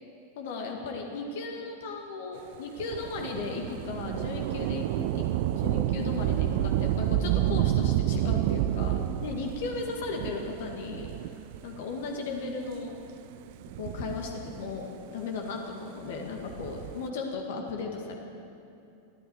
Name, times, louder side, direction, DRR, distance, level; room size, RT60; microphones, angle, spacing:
voice 1, 0.4-5.2 5.5-11.4 11.6-13.0 13.8-18.2, left 4 dB, 55° left, 2 dB, 1.9 m, -36 dB
Thunder / Rain, 2.8-11.7 12.5-12.6 13.5-14.8 16.3-17.1, right 13 dB, 50° right, 0.5 m, -29 dB
20.5 x 14.0 x 4.8 m, 2.6 s
figure-of-eight pair, 90°, 0 cm